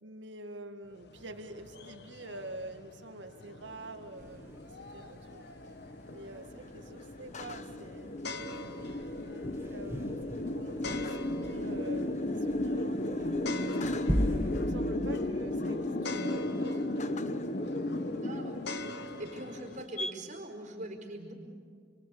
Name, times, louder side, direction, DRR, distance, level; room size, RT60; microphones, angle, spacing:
voice 1, 0.0-4.6 4.9-5.5 6.1-8.1 8.6-9.1 9.7-14.2 14.6-17.8, right 1 dB, 80° right, 6 dB, 2.0 m, -47 dB
sound 1, 0.8-19.8, left 2 dB, 65° left, 1.3 m, -47 dB
sound 2, 3.7-20.1, left 1 dB, 40° left, 1.1 m, -35 dB
sound 3, 4.2-14.7, equal, 15° right, 1.9 m, -40 dB
voice 2, 18.2-18.6 18.9-21.3, right 1 dB, 45° right, 1 dB, 4.6 m, -42 dB
28.0 x 23.0 x 8.4 m, 2.1 s
head